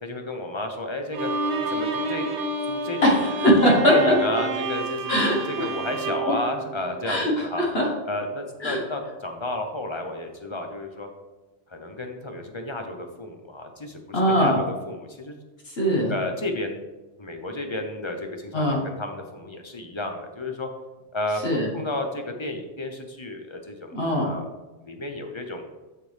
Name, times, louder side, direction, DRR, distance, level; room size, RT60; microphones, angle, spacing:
voice 1, 0.0-1.3 1.6-2.3 2.6-3.3 3.9-5.2 5.5-7.7 8.1-11.1 11.7-15.4 16.1-16.8 17.2-20.7 21.1-21.4 21.7-23.9 24.2-24.4 24.8-25.6, left 2 dB, 30° left, 4 dB, 0.7 m, -32 dB
Bowed string instrument, 1.1-7.4, right 3 dB, 85° right, 1.1 m, -29 dB
voice 2, 3.0-4.4 5.1-5.7 7.0-7.9 8.6-8.8 14.1-14.6 15.8-16.1 18.5-18.8 21.4-21.7 23.9-24.3, equal, 60° left, -2 dB, 1.5 m, -21 dB
6.8 x 6.8 x 3.3 m, 1.2 s
omnidirectional pair, 1.2 m